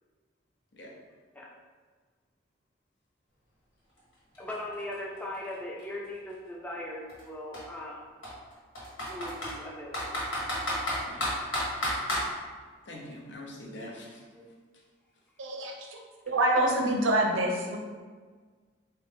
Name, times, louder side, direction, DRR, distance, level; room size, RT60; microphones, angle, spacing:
Computer keyboard, 4.0-4.1 4.3-6.3 7.1-7.2 7.5-7.6 8.2-9.5 9.9-12.3, equal, 85° left, 1.5 m, -31 dB
voice 1, 4.4-8.1 9.1-10.1 14.3-14.5 16.5-16.6, left 1 dB, 5° left, -4 dB, 0.5 m, -39 dB
voice 2, 11.0-11.3 12.9-14.2 15.7-15.9, left 1 dB, 60° left, -2 dB, 0.7 m, -44 dB
voice 3, 15.4-15.7 16.3-17.8, right 1 dB, 75° right, 1 dB, 0.6 m, -25 dB
3.8 x 2.8 x 3.6 m, 1.5 s
head